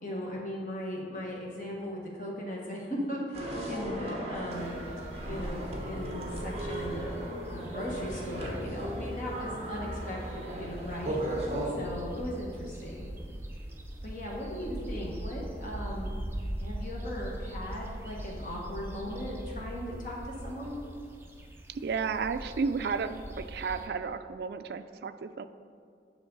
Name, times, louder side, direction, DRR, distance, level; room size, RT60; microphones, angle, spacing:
voice 1, 0.0-4.8 5.2-7.1 7.5-11.2 11.8-13.1 14.0-16.1 16.6-20.8, equal, 45° left, -3 dB, 1.5 m, -38 dB
sound 1, 3.3-11.7, right 1 dB, 35° right, 1.1 m, -36 dB
sound 2, 4.5-23.9, right 1 dB, 15° right, 0.5 m, -41 dB
voice 2, 21.7-25.5, right 5 dB, 60° right, 10 dB, 0.3 m, -33 dB
7.2 x 6.5 x 3.9 m, 2.3 s
head